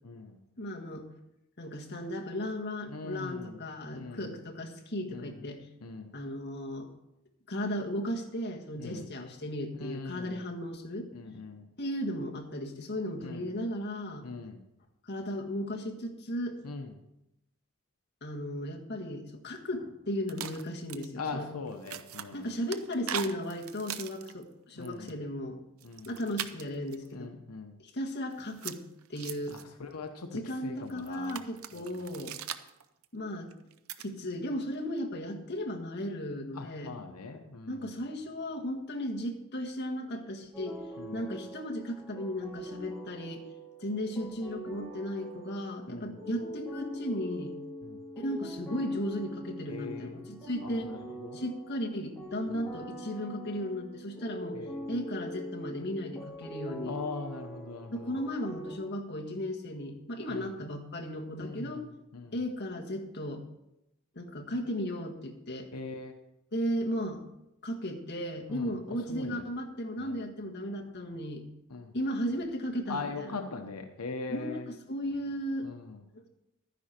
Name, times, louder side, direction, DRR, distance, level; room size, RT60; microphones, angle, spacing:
voice 1, 0.0-0.4 2.9-3.6 3.9-4.3 5.1-5.3 5.8-6.1 8.8-9.1 9.8-10.4 11.1-11.7 13.2-13.4 14.2-14.6 16.6-16.9 21.2-22.5 24.7-25.1 25.8-26.1 27.1-27.8 29.5-31.4 31.7-32.0 36.5-37.9 41.0-41.2 45.9-46.1 47.8-48.0 49.7-50.3 50.8-50.9 51.2-51.4 52.5-52.6 54.5-54.9 56.8-58.2 60.3-60.5 61.3-61.9 62.1-62.4 65.7-66.2 68.5-69.4 70.0-70.2 71.7-71.9 72.9-74.7 75.6-76.0, left 4 dB, 90° left, 5 dB, 1.0 m, -41 dB
voice 2, 0.6-1.1 1.6-5.7 6.1-6.9 7.5-11.1 11.8-14.3 15.0-16.6 18.2-21.5 22.3-25.6 26.1-27.3 27.8-28.8 29.1-29.6 30.3-32.3 33.1-33.5 34.0-36.9 37.7-40.8 41.1-43.4 43.8-47.5 48.2-51.0 51.3-54.6 54.9-57.0 57.9-61.9 62.3-63.4 64.1-65.7 66.5-67.2 67.6-71.4 71.9-73.3 74.3-75.7 76.1-76.3, equal, 50° left, 1 dB, 1.6 m, -35 dB
sound 1, 20.3-21.1 21.7-24.4 24.8-25.1 25.8-27.1 28.3-29.6 30.9-33.0 33.5-34.1 34.7-35.0, right 9 dB, 70° right, 0.7 m, -40 dB
sound 2, 40.5-58.8, right 1 dB, ahead, 4.0 m, -43 dB
12.5 x 10.0 x 4.4 m, 0.88 s
head